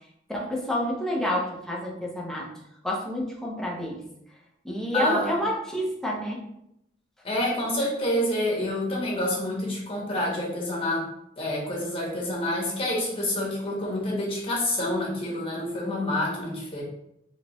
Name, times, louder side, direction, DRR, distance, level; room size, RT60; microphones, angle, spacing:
voice 1, 0.3-2.5 2.8-4.0 4.6-6.4, left 1 dB, 5° left, -3 dB, 0.7 m, -28 dB
voice 2, 4.9-5.4 7.2-11.1 11.4-16.8, left 1 dB, 30° left, -3 dB, 1.1 m, -28 dB
3.3 x 3.0 x 3.0 m, 0.79 s
head